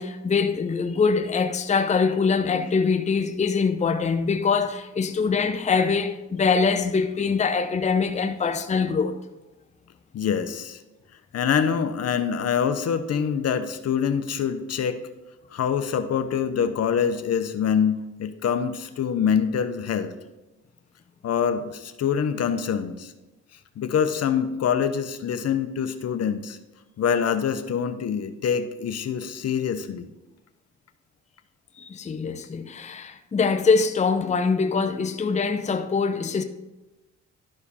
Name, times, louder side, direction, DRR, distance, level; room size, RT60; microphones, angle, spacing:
voice 1, 0.0-9.2 31.8-36.4, left 5 dB, 25° left, 0.6 m, -23 dB
voice 2, 10.1-10.8 11.3-15.0 15.5-20.1 21.2-23.1 23.8-26.6 27.0-30.1, left 7 dB, 55° left, 0.8 m, -25 dB
12.0 x 4.9 x 4.2 m
cardioid pair, 90°, 30 cm